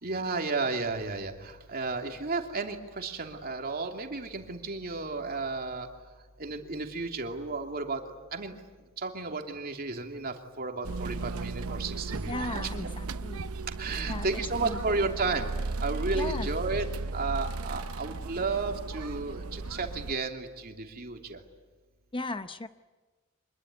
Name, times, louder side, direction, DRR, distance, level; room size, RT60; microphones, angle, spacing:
voice 1, 0.0-5.9 6.4-8.6 9.0-12.7 13.8-15.5 15.8-16.8 17.1-21.4, right 3 dB, 45° right, 4 dB, 2.8 m, -33 dB
sound 1, 10.8-20.1, right 3 dB, 80° right, 0.8 m, -35 dB
voice 2, 12.3-13.5 14.1-15.1 16.1-16.5 22.1-22.7, left 2 dB, 25° left, 10 dB, 0.8 m, -37 dB
26.0 x 21.5 x 9.6 m, 1.3 s
head